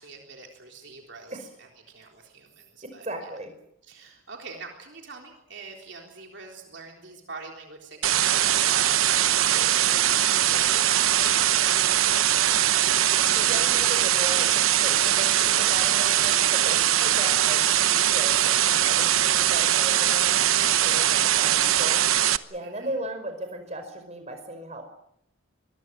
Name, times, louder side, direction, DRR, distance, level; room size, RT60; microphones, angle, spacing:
voice 1, 0.0-1.7 1.9-3.1 3.9-12.8 13.1-13.5 20.9-21.3 22.6-22.9, right 4 dB, 55° right, 1 dB, 3.8 m, -44 dB
voice 2, 2.8-3.5 4.0-4.1 13.1-22.0 22.5-24.8, right 1 dB, 30° right, 6 dB, 5.2 m, -37 dB
sound 1, 8.0-22.4, right 11 dB, 85° right, 1.0 m, -21 dB
25.5 x 22.5 x 7.6 m, 0.77 s
head